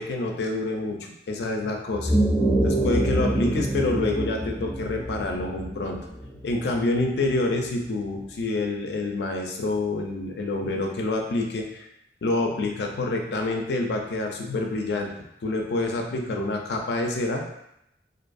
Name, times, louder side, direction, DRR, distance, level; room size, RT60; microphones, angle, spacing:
voice 1, 0.0-2.1 2.6-6.0 6.4-11.9 12.2-15.1 15.4-17.4, left 2 dB, 75° left, 2 dB, 0.4 m, -27 dB
sound 1, 1.9-6.7, right 1 dB, ahead, 0.8 m, -25 dB
2.5 x 2.3 x 2.5 m, 0.81 s
head